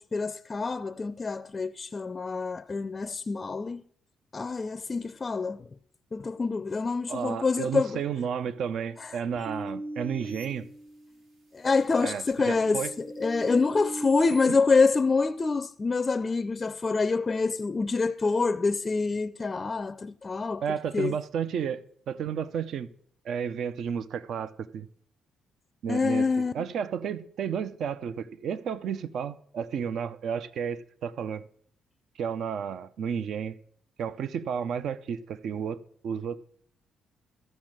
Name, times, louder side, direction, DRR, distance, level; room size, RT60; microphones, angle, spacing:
voice 1, 0.0-3.8 4.3-5.6 6.1-8.0 9.0-9.2 11.5-20.6 20.9-21.2 25.9-26.5, left 4 dB, 30° left, 0.4 m, -26 dB
voice 2, 7.1-10.7 12.0-12.9 14.5-14.6 20.6-22.9 23.2-24.9 25.8-31.4 32.2-33.6 34.0-36.4, right 7 dB, 70° right, 0.5 m, -32 dB
sound 1, 9.5-11.4 11.9-14.5, right 1 dB, 90° right, 2.7 m, -39 dB
13.5 x 5.5 x 7.4 m
cardioid pair, 90°, 0 cm